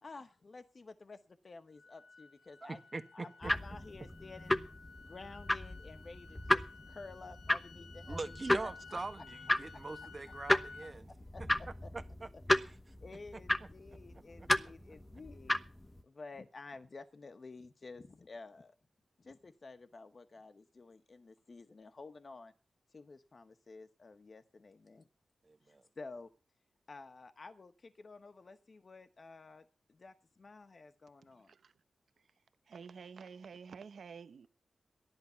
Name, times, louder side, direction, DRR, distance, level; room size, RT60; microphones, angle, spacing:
voice 1, 0.0-2.8 3.1-4.6 5.0-8.3 8.6-9.0 11.3-11.4 11.8-11.9 13.0-15.6 16.0-18.7 19.2-22.5 22.9-25.0 25.6-26.3 26.9-31.5, left 3 dB, 45° left, 1.1 m, -52 dB
sound 1, 1.8-10.9, left 4 dB, 85° left, 1.6 m, -54 dB
voice 2, 2.6-3.5 8.1-11.1 11.9-12.7 13.3-13.4 14.4-14.5 25.4-25.8, right 3 dB, 40° right, 1.5 m, -43 dB
sound 2, 3.4-16.0, left 1 dB, 20° left, 1.0 m, -35 dB
voice 3, 32.7-34.5, right 6 dB, 75° right, 0.9 m, -49 dB
14.5 x 11.0 x 5.8 m
cardioid pair, 75°, 0 cm